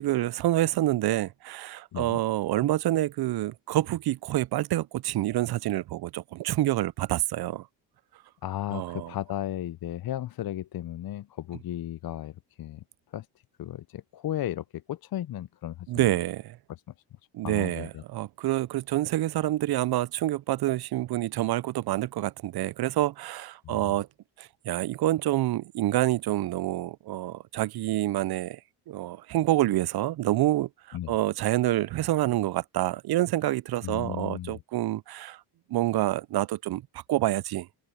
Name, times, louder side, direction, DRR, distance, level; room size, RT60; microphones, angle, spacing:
voice 1, 0.0-7.7 8.7-9.1 15.9-16.6 17.3-24.1 24.4-28.6 28.9-35.4 35.7-36.8 37.1-37.7, right 15 dB, 50° right, 0.5 m, -27 dB
voice 2, 8.4-12.8 13.1-13.3 13.6-16.1 16.7-16.8 17.4-18.0 23.6-23.9 30.9-31.2 33.8-34.6, left 12 dB, 50° left, 0.6 m, -35 dB
open air
cardioid pair, 70°, 49 cm